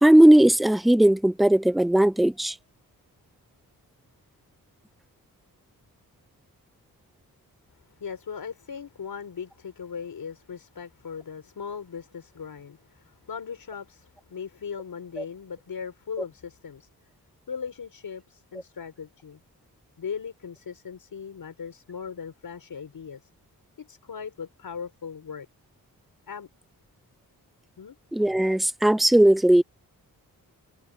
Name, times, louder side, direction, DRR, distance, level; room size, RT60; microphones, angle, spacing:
voice 1, 0.0-2.5 28.1-29.6, right 1 dB, ahead, 0.6 m, -18 dB
voice 2, 7.7-16.9 17.5-19.4 20.0-23.3 23.8-25.5 26.3-26.5 27.8-28.0, left 6 dB, 70° left, 4.5 m, -38 dB
cardioid pair, 60°, 37 cm